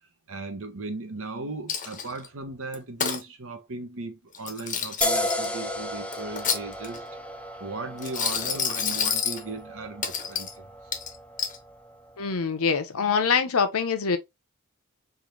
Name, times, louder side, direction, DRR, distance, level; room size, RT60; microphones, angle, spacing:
voice 1, 0.3-7.0 7.6-10.7, right 3 dB, 65° right, 1.1 m, -37 dB
Coin (dropping), 1.7-2.3 2.7-3.2 4.3-5.5 6.1-7.1 8.0-9.4 10.0-10.5 10.9-11.6, left 7 dB, 35° left, 0.8 m, -29 dB
sound 1, 5.0-12.3, left 1 dB, 5° left, 0.4 m, -34 dB
voice 2, 12.2-14.2, left 5 dB, 70° left, 0.7 m, -24 dB
3.8 x 2.7 x 3.1 m
head